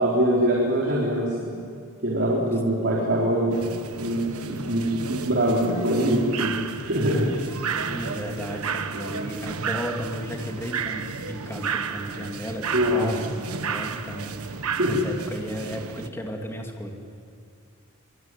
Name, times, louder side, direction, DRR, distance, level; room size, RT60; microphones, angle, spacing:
voice 1, 0.0-1.5 2.0-3.6 4.0-6.5 6.8-7.3 12.7-13.1 14.8-15.1, right 1 dB, 55° right, -4 dB, 4.2 m, -23 dB
sound 1, 3.5-16.1, right 5 dB, 90° right, 1.4 m, -32 dB
voice 2, 7.6-16.9, equal, 10° left, 2 dB, 2.9 m, -34 dB
24.5 x 24.0 x 9.3 m, 2.4 s
head